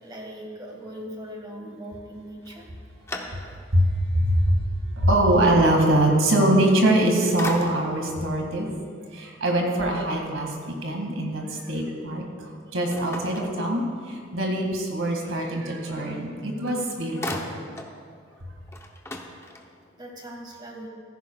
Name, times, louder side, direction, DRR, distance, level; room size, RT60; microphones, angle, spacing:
voice 1, 0.0-2.7 20.0-20.9, equal, 20° right, 0 dB, 1.7 m, -39 dB
sound 1, 2.4-3.9 4.4-4.5 6.7-7.0 7.4-8.1 12.9-14.2 16.3-16.4 16.7-18.0 18.3-18.4 18.7-20.0, left 1 dB, 15° left, 0.8 m, -37 dB
voice 2, 3.7-4.6 5.0-8.7 9.1-17.6, right 1 dB, 85° right, 1 dB, 2.1 m, -23 dB
15.5 x 14.5 x 2.4 m, 2.1 s
head